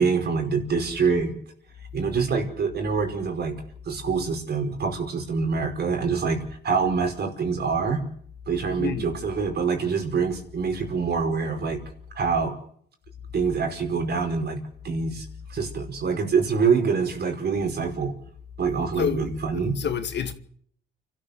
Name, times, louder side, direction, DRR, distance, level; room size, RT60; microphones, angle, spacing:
voice 1, 0.0-1.3 1.9-3.5 3.8-8.0 8.5-11.8 12.1-12.5 13.3-14.6 14.8-18.1 18.6-19.8, right 5 dB, 55° right, 5.1 m, -25 dB
voice 2, 8.8-9.1 19.0-20.3, left 7 dB, 60° left, 2.1 m, -29 dB
29.5 x 13.0 x 6.8 m
cardioid pair, 90°, 20 cm